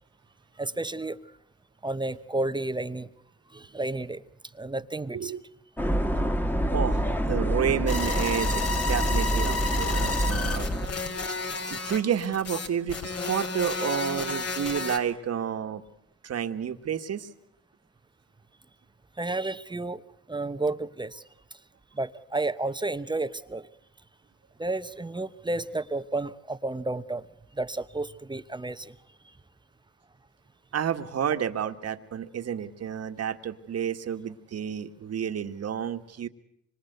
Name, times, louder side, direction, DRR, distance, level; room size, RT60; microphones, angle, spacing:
voice 1, 0.6-1.2 1.8-3.1 3.5-4.2 4.5-5.3 19.2-20.0 20.3-21.2 21.9-23.7 24.6-27.3 27.5-28.9, right 2 dB, 15° right, 12 dB, 0.9 m, -31 dB
sound 1, 5.8-10.9, right 1 dB, 5° left, 1.4 m, -27 dB
voice 2, 6.7-10.7 11.7-15.8 16.2-17.3 30.7-36.3, right 8 dB, 55° right, 7 dB, 1.7 m, -30 dB
sound 2, 7.9-15.0, left 3 dB, 55° left, 3.9 m, -31 dB
26.0 x 24.5 x 8.2 m, 0.76 s
cardioid pair, 90°, 30 cm